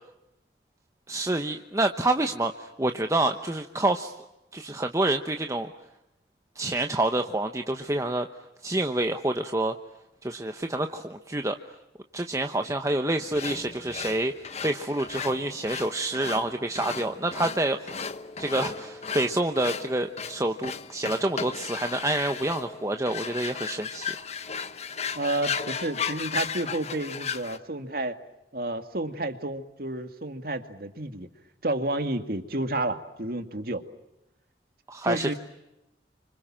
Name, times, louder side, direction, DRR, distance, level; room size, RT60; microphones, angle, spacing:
voice 1, 1.1-4.1 4.5-5.7 6.6-8.3 8.6-9.8 10.2-11.6 12.1-14.3 14.6-17.9 18.4-24.2 34.9-35.3, right 2 dB, 15° right, 6 dB, 1.0 m, -27 dB
sound 1, 13.3-27.6, left 6 dB, 35° left, 1.2 m, -35 dB
voice 2, 25.2-28.2 28.5-31.3 31.6-33.9 35.0-35.3, right 2 dB, 55° right, 8 dB, 2.1 m, -30 dB
29.5 x 26.0 x 7.5 m, 0.93 s
head